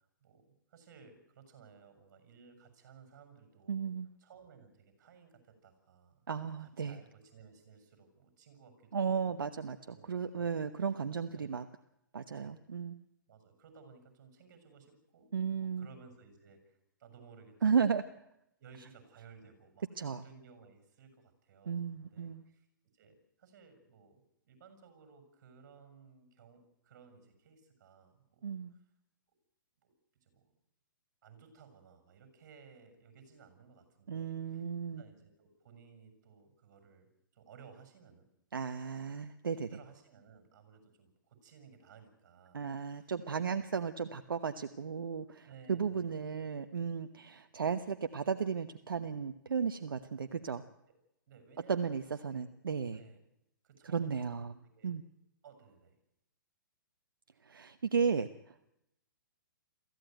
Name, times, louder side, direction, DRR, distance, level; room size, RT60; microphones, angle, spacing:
voice 1, 0.2-3.9 4.2-6.3 6.6-9.6 9.9-10.5 11.3-11.5 12.3-12.6 13.3-17.9 18.6-19.9 20.2-22.7 22.9-28.8 29.8-29.9 30.2-30.5 31.2-34.7 35.0-38.3 39.5-43.1 45.4-46.2 47.7-47.8 50.3-50.5 51.3-52.0 52.2-52.5 52.9-53.2 53.6-54.9 55.4-56.0, right 6 dB, 55° right, 8 dB, 7.1 m, -58 dB
voice 2, 3.7-4.1 6.3-7.0 8.9-11.6 12.1-13.0 15.3-15.9 17.6-18.0 20.0-20.2 21.7-22.4 28.4-28.7 34.1-35.0 38.5-39.7 42.5-50.6 51.7-53.0 53.9-54.5 54.8-55.0 57.4-58.5, right 6 dB, 85° right, 9 dB, 1.1 m, -34 dB
23.5 x 15.0 x 9.2 m, 0.84 s
hypercardioid pair, 135°, 11 cm